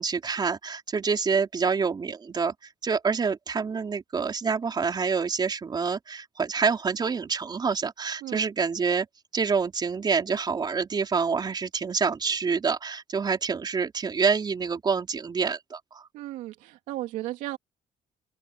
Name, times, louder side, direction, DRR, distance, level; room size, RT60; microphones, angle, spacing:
voice 1, 0.0-2.5 2.8-9.1 9.3-16.0, right 5 dB, 35° right, 4.2 m, -27 dB
voice 2, 16.1-17.6, right 15 dB, 85° right, 2.8 m, -35 dB
open air
cardioid pair, 95°, 13 cm